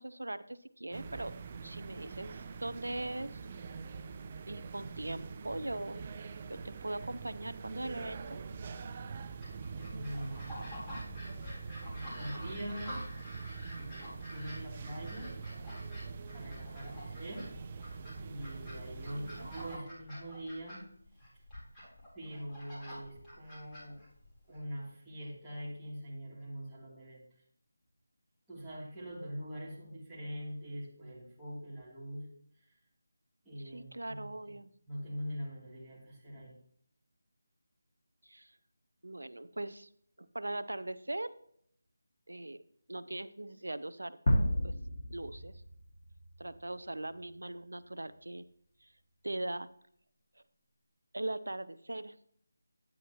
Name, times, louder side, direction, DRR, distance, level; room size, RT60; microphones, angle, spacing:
voice 1, 0.0-1.3 1.6-3.4 4.5-6.0 6.4-8.4 19.2-19.5 33.7-34.7 38.2-38.5 39.0-39.9 40.2-41.3 42.3-42.6 42.9-44.2 44.6-44.7 45.1-45.6 46.4-48.4 49.2-49.7 51.1-52.1, right 1 dB, 85° right, 14 dB, 0.6 m, -40 dB
sound 1, 0.9-19.8, right 4 dB, 30° right, 0.5 m, -44 dB
sound 2, 9.4-24.6, equal, 10° left, 3.6 m, -48 dB
voice 2, 9.8-10.8 12.1-13.0 13.8-15.3 16.3-17.5 18.2-20.8 22.1-24.0 24.5-27.2 28.5-32.3 32.6-32.7 33.4-34.5 34.9-36.5, equal, 5° right, -11 dB, 3.0 m, -43 dB
sound 3, 44.3-47.2, equal, 45° left, 1.9 m, -32 dB
10.0 x 9.4 x 3.0 m, 0.67 s
figure-of-eight pair, 165°, 0 cm